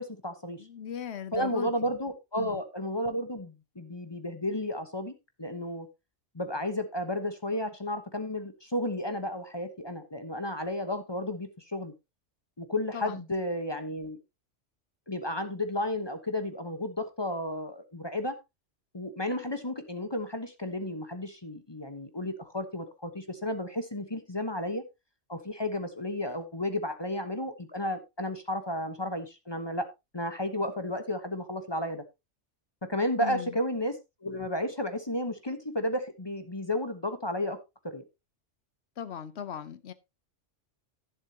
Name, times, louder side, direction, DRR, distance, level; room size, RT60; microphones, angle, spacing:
voice 1, 0.0-0.6 1.3-5.1 5.4-5.9 6.3-11.9 12.6-14.2 15.1-18.4 18.9-24.8 25.3-29.9 30.1-32.0 32.8-37.6 37.8-38.0, left 1 dB, 25° left, 1.1 m, -33 dB
voice 2, 0.6-1.9 2.4-2.6 12.9-13.2 33.2-33.6 39.0-39.9, left 8 dB, 65° left, 1.1 m, -38 dB
11.0 x 10.5 x 2.8 m
omnidirectional pair, 1.2 m